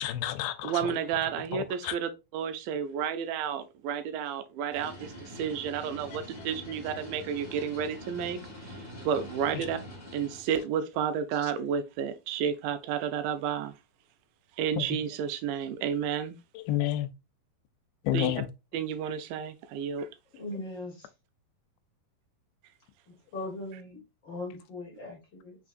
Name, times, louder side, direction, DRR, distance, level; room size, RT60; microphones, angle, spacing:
voice 1, 0.0-0.9 1.5-2.0 9.5-9.7 11.4-11.5 14.8-14.9 16.6-17.1 18.0-18.5, left 12 dB, 85° left, 2.3 m, -30 dB
voice 2, 0.6-9.8 10.1-13.7 14.6-16.4 18.1-18.3 18.7-20.1, right 8 dB, 85° right, 2.5 m, -31 dB
sound 1, 4.7-10.4, equal, 25° left, 0.9 m, -44 dB
voice 3, 20.4-21.1 23.1-25.6, left 2 dB, 45° left, 1.7 m, -40 dB
5.7 x 3.5 x 2.4 m
omnidirectional pair, 4.1 m